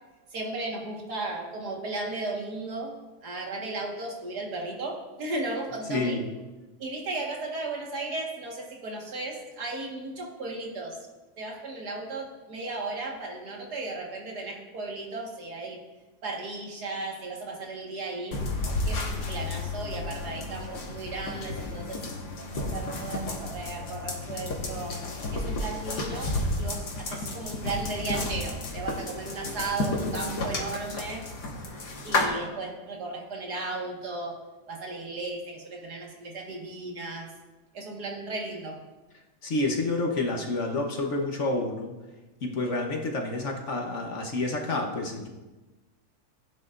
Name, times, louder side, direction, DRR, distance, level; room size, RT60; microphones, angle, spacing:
voice 1, 0.3-2.9 3.2-6.2 6.8-11.0 11.4-15.8 16.2-18.4 18.8-22.0 22.5-25.0 25.3-31.4 32.0-34.4 34.7-37.3 37.7-38.8, right 2 dB, 75° right, -1 dB, 2.2 m, -35 dB
voice 2, 5.9-6.3 39.4-42.0 42.4-45.3, left 2 dB, 50° left, 2 dB, 1.3 m, -29 dB
sound 1, 18.3-32.3, left 2 dB, 85° left, 2.0 m, -32 dB
16.0 x 9.0 x 2.5 m, 1.2 s
omnidirectional pair, 1.7 m